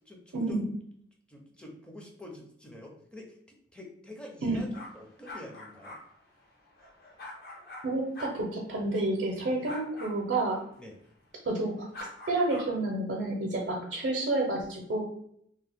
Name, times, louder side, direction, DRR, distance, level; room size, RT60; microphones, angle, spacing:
voice 1, 0.1-0.7 1.3-3.4 3.7-4.7 4.9-6.0 9.5-9.7 10.8-10.9, left 1 dB, 5° left, 0 dB, 0.5 m, -46 dB
sound 1, 4.7-7.8 8.1-8.3 9.6-10.1 11.9-12.6, left 2 dB, 55° left, 0.8 m, -44 dB
voice 2, 7.8-10.6 11.5-11.9 12.3-15.0, right 2 dB, 70° right, -1 dB, 0.5 m, -29 dB
2.8 x 2.0 x 3.3 m, 0.70 s
head